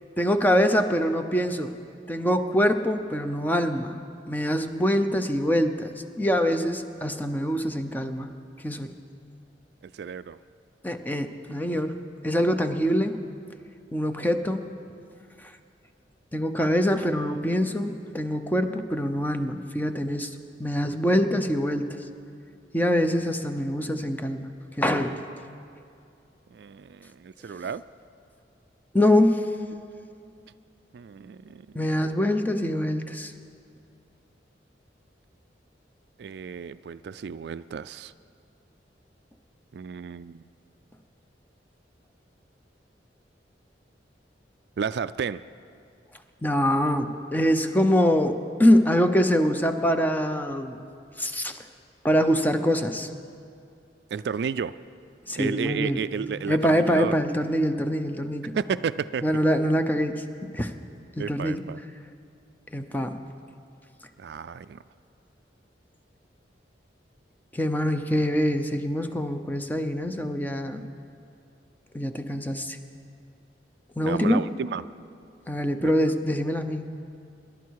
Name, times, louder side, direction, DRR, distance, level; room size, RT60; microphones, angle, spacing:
voice 1, 0.2-1.8 2.1-4.0 4.3-8.3 8.6-9.0 10.8-13.2 13.9-14.6 15.4-15.5 16.3-22.0 22.7-24.5 24.8-25.2 28.9-29.4 31.7-33.3 46.4-50.8 51.2-51.6 52.0-53.1 55.3-56.0 56.5-58.6 59.2-60.3 60.5-60.7 61.2-61.6 62.7-63.2 67.5-70.8 71.9-72.8 74.0-74.4 75.5-76.9, equal, 10° left, 7 dB, 0.7 m, -24 dB
voice 2, 9.9-10.4 16.6-16.8 26.5-27.8 30.9-31.8 36.2-38.1 39.7-40.4 44.8-45.4 54.1-54.8 55.4-57.2 58.5-59.2 61.2-61.8 64.2-64.8 74.1-74.8 75.8-76.0, right 6 dB, 65° right, 15 dB, 0.3 m, -32 dB
26.0 x 11.5 x 4.7 m, 2.4 s
head